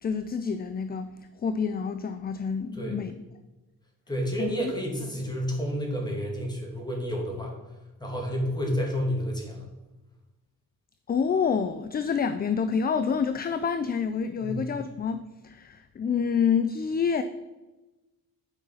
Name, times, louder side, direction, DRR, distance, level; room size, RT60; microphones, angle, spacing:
voice 1, 0.0-1.1 1.4-3.1 4.4-4.7 11.1-17.2, left 6 dB, 25° left, 11 dB, 0.4 m, -27 dB
voice 2, 4.1-7.5 8.0-9.7 14.4-14.6, equal, 10° left, -1 dB, 2.6 m, -30 dB
8.9 x 5.6 x 5.5 m, 1.1 s
cardioid pair, 115°, 36 cm